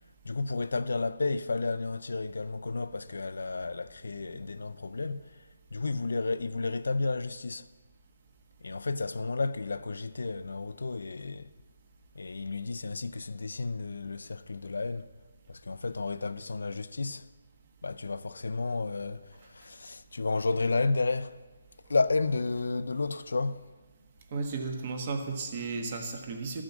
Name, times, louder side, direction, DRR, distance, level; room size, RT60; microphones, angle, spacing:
voice 1, 0.2-7.7 8.6-11.5 12.1-15.1 15.5-17.3 17.8-21.4 21.9-23.7, left 3 dB, 90° left, 0.5 m, -32 dB
voice 2, 24.3-26.6, right 4 dB, 30° right, 1.2 m, -34 dB
13.5 x 6.3 x 7.2 m
hypercardioid pair, 175°, 0 cm